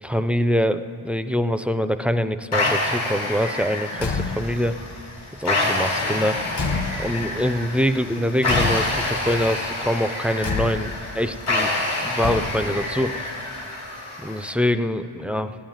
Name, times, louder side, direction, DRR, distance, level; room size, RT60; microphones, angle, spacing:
voice 1, 0.0-4.8 5.4-6.4 7.0-11.7 12.0-13.3 14.2-15.6, equal, 5° right, 10 dB, 0.3 m, -24 dB
sound 1, 2.5-14.5, left 2 dB, 85° left, 2.6 m, -27 dB
Car / Truck / Slam, 3.9-4.7 5.9-7.4 8.4-9.2 10.4-11.1 12.2-12.9, left 4 dB, 55° left, 1.3 m, -29 dB
16.5 x 7.2 x 9.1 m, 3.0 s
wide cardioid pair, 105°, 49 cm